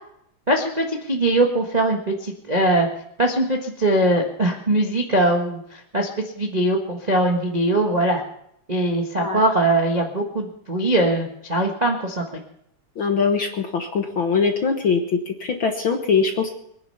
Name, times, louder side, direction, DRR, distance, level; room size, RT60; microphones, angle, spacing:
voice 1, 0.5-2.9 3.2-6.1 6.4-8.2 8.7-12.2, right 1 dB, 70° right, 1 dB, 0.4 m, -21 dB
voice 2, 13.0-16.5, left 5 dB, 60° left, 4 dB, 1.4 m, -22 dB
23.0 x 10.0 x 5.6 m, 0.73 s
omnidirectional pair, 3.7 m